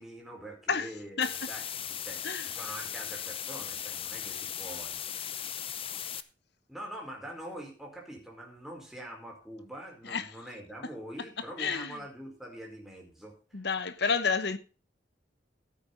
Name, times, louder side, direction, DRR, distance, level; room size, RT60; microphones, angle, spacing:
voice 1, 0.0-5.0 6.7-13.6, right 1 dB, ahead, 4.7 m, -44 dB
sound 1, 1.2-6.2, left 9 dB, 30° left, 0.7 m, -38 dB
voice 2, 10.0-10.3 11.4-12.0 13.5-14.6, left 5 dB, 60° left, 1.1 m, -30 dB
15.0 x 9.1 x 4.0 m
head